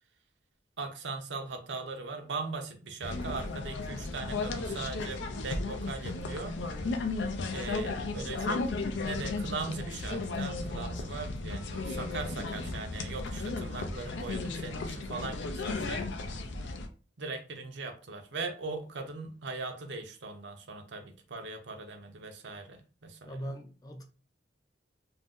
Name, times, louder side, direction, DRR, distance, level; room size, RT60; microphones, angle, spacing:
voice 1, 0.8-6.5 7.5-8.7 9.0-16.0 17.2-23.5, right 3 dB, 75° right, 0.6 m, -39 dB
sound 1, 3.0-16.9, left 3 dB, 80° left, 0.5 m, -35 dB
voice 2, 23.3-24.0, right 1 dB, 20° left, 0.4 m, -40 dB
2.6 x 2.1 x 3.5 m
head